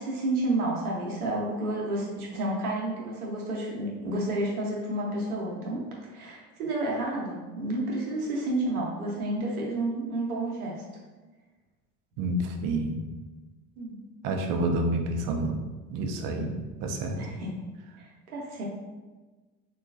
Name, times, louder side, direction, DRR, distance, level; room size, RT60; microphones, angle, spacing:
voice 1, 0.0-5.8 6.1-10.7 13.8-14.0 17.1-17.5 18.0-18.6, right 1 dB, 85° right, -2 dB, 0.9 m, -30 dB
voice 2, 12.2-13.0 14.2-15.6 15.9-16.5 16.8-17.2, right 2 dB, 50° right, 4 dB, 0.6 m, -28 dB
3.7 x 2.3 x 2.5 m, 1.2 s
hypercardioid pair, 70°, 44 cm